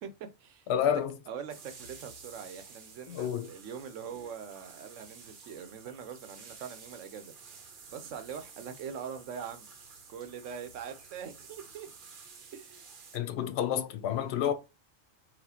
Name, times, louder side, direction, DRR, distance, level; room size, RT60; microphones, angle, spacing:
voice 1, 0.0-0.7 1.3-7.3 7.9-9.7 10.1-11.9 12.5-12.8, right 7 dB, 75° right, 0.9 m, -43 dB
voice 2, 0.7-1.2 3.1-3.5 13.1-14.5, left 9 dB, 65° left, 0.7 m, -29 dB
sound 1, 1.5-13.2, right 5 dB, 50° right, 0.7 m, -52 dB
4.2 x 2.3 x 2.7 m
omnidirectional pair, 1.3 m